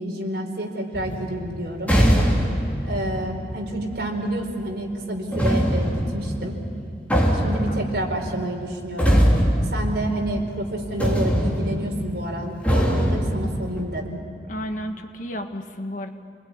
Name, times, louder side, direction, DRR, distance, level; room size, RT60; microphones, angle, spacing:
voice 1, 0.0-2.0 2.8-6.6 7.3-9.3 9.7-14.2, right 1 dB, 65° right, 1 dB, 4.5 m, -29 dB
sound 1, 0.9-4.3 5.3-10.7 11.0-13.8, equal, 10° left, 3.5 m, -23 dB
voice 2, 14.5-16.1, equal, 45° left, 5 dB, 1.7 m, -32 dB
28.5 x 21.0 x 9.8 m, 2.4 s
head